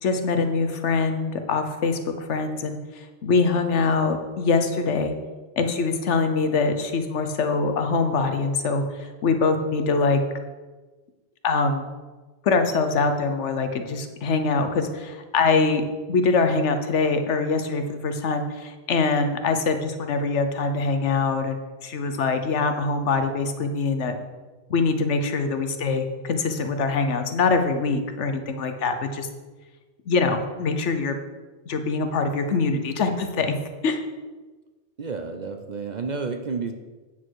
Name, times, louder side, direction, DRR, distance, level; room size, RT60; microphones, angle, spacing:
voice 1, 0.0-5.1 5.6-10.2 11.4-11.9 12.4-15.8 16.1-24.1 24.7-29.3 30.1-31.2 31.7-33.6 33.8-34.0, left 4 dB, 85° left, 7 dB, 1.2 m, -23 dB
voice 2, 35.0-36.7, right 4 dB, 50° right, 6 dB, 0.6 m, -30 dB
9.1 x 6.4 x 4.6 m, 1.3 s
omnidirectional pair, 1.2 m